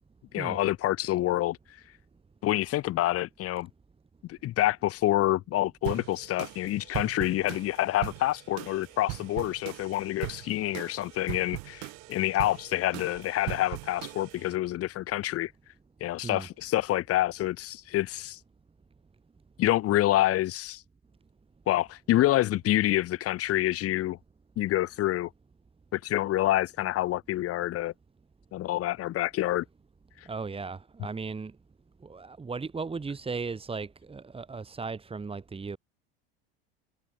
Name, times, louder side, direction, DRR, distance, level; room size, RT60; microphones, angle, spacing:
voice 1, 0.3-1.6 2.4-3.7 4.2-15.5 16.0-18.4 19.6-20.8 21.7-24.2 24.6-25.3 25.9-27.9 28.5-29.6, left 15 dB, 50° left, 3.1 m, -27 dB
sound 1, 5.8-14.5, right 39 dB, 65° right, 1.9 m, -40 dB
voice 2, 30.3-31.5 32.0-35.8, right 4 dB, 20° right, 3.4 m, -36 dB
hypercardioid pair, 95°, 30 cm